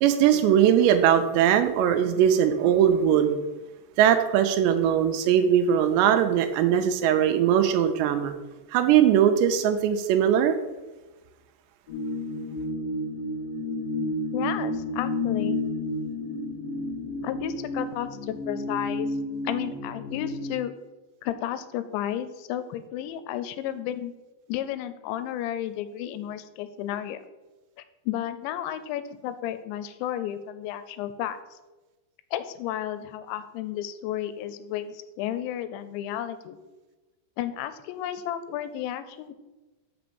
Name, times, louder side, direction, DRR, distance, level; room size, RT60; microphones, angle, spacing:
voice 1, 0.0-3.4 4.0-8.3 8.7-10.6, right 9 dB, 80° right, 7 dB, 2.6 m, -20 dB
sound 1, 11.9-20.5, left 2 dB, 55° left, 2.0 m, -31 dB
voice 2, 14.3-15.6 17.2-19.2 19.4-20.7 21.2-24.1 24.5-27.2 27.8-31.4 32.3-36.6 37.4-39.3, left 11 dB, 85° left, 12 dB, 2.9 m, -32 dB
6.1 x 5.9 x 6.9 m, 1.2 s
omnidirectional pair, 5.2 m